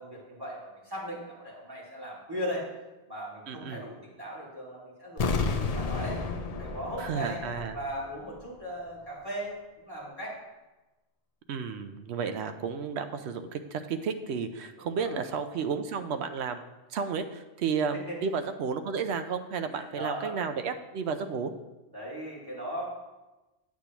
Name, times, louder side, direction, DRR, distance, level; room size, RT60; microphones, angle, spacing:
voice 1, 0.0-2.7 3.1-6.2 6.5-10.4 14.8-15.2 17.9-18.2 19.7-20.6 21.9-22.9, equal, 20° right, -7 dB, 2.3 m, -38 dB
voice 2, 3.5-3.8 7.0-7.8 11.5-16.6 16.9-21.5, right 6 dB, 90° right, 9 dB, 0.9 m, -32 dB
sound 1, 5.2-8.1 8.3-8.4, left 4 dB, 50° left, 0.5 m, -31 dB
8.4 x 8.1 x 3.0 m, 1.1 s
omnidirectional pair, 1.1 m